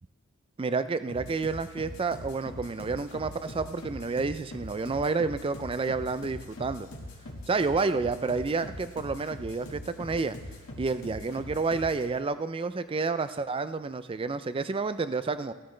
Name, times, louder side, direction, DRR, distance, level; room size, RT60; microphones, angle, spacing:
voice 1, 0.6-6.9 7.5-10.4 10.8-15.5, right 4 dB, 25° right, 13 dB, 0.4 m, -30 dB
sound 1, 1.1-12.1, left 1 dB, 65° left, 1.8 m, -43 dB
14.0 x 13.5 x 3.3 m, 1.3 s
head